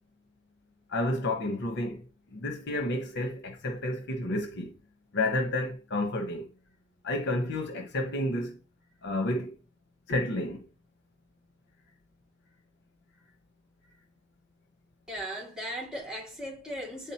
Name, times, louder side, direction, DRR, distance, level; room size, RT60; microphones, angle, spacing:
voice 1, 0.9-2.1 2.3-4.7 5.1-6.5 7.0-8.6 9.0-9.6 10.1-10.7, left 1 dB, 60° left, 1.0 m, -30 dB
voice 2, 15.1-17.1, equal, 5° right, 2.2 m, -37 dB
9.0 x 3.7 x 2.8 m
head